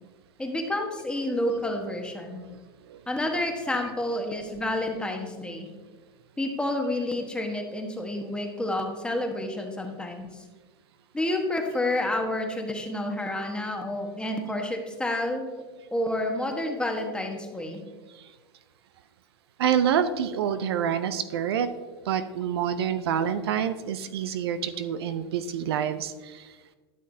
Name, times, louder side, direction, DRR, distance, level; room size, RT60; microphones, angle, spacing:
voice 1, 0.4-2.4 3.1-5.7 6.4-10.4 11.1-15.5 15.9-17.8, left 1 dB, 5° left, 3 dB, 1.2 m, -29 dB
voice 2, 19.6-21.7 22.0-26.6, right 8 dB, 75° right, 11 dB, 0.6 m, -27 dB
12.0 x 6.4 x 2.8 m, 1.3 s
hypercardioid pair, 110°, 13 cm